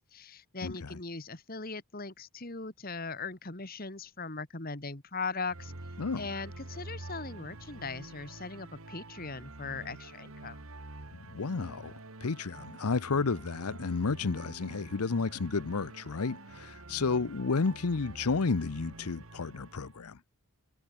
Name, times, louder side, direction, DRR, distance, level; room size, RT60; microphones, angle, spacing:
voice 1, 0.0-5.7 6.2-10.6, left 4 dB, 40° left, 2.0 m, -39 dB
voice 2, 0.6-1.0 6.0-6.3 11.1-20.2, left 4 dB, 90° left, 0.8 m, -32 dB
sound 1, 5.5-20.0, right 2 dB, 70° right, 2.2 m, -47 dB
head